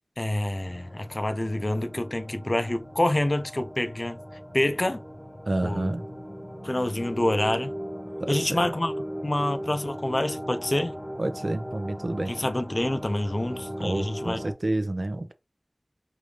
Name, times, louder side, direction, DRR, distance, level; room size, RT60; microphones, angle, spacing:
voice 1, 0.2-4.2 4.5-5.0 5.6-5.9 6.6-7.7 8.3-11.0 12.3-14.4, left 1 dB, 45° left, 0.5 m, -27 dB
sound 1, 0.5-14.5, equal, 5° left, 1.0 m, -38 dB
voice 2, 5.5-6.0 8.2-8.7 11.2-12.3 13.8-15.3, right 1 dB, 65° right, 0.6 m, -29 dB
5.1 x 2.6 x 3.2 m
wide cardioid pair, 45°, 0 cm